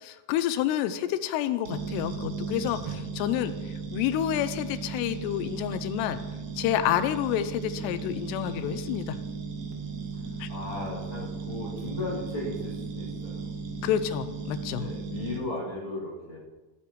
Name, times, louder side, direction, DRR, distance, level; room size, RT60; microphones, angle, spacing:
voice 1, 0.0-3.5 3.9-6.2 6.6-9.2 10.4-10.5 13.8-14.9, left 11 dB, 85° left, 13 dB, 2.7 m, -29 dB
sound 1, 1.7-15.4, right 5 dB, 75° right, 3.0 m, -36 dB
voice 2, 10.5-13.5 14.7-16.4, left 2 dB, 35° left, -7 dB, 2.8 m, -36 dB
16.0 x 8.4 x 3.1 m, 1.2 s
omnidirectional pair, 4.8 m